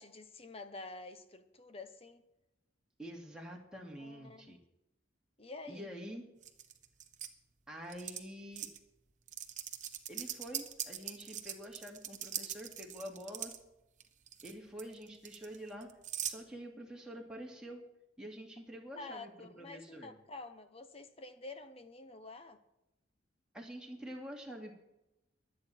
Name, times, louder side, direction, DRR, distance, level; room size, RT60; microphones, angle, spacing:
voice 1, 0.0-2.2 4.0-4.6 5.4-5.9 18.9-22.6, left 3 dB, 30° left, 9 dB, 1.0 m, -49 dB
voice 2, 3.0-4.6 5.7-6.3 7.7-8.7 10.1-13.5 14.4-15.9 16.2-17.8 18.2-20.2 23.5-24.7, equal, 5° right, -2 dB, 2.6 m, -47 dB
sound 1, 6.4-7.3 7.9-8.2 8.6-8.8 9.3-13.6 14.0-14.5 14.8-16.4, right 11 dB, 40° right, 1.1 m, -41 dB
23.0 x 8.8 x 4.5 m, 0.90 s
head